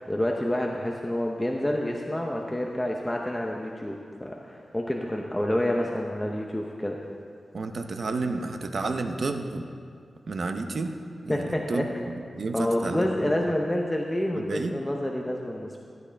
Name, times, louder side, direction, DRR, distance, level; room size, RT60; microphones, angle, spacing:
voice 1, 0.0-7.0 11.3-11.9 12.5-15.8, left 1 dB, 10° left, 0 dB, 0.6 m, -28 dB
voice 2, 7.5-9.6 10.3-10.9 11.2-13.5 14.3-14.8, right 3 dB, 50° right, 6 dB, 0.7 m, -31 dB
15.0 x 11.0 x 3.4 m, 2.2 s
wide cardioid pair, 170°, 0 cm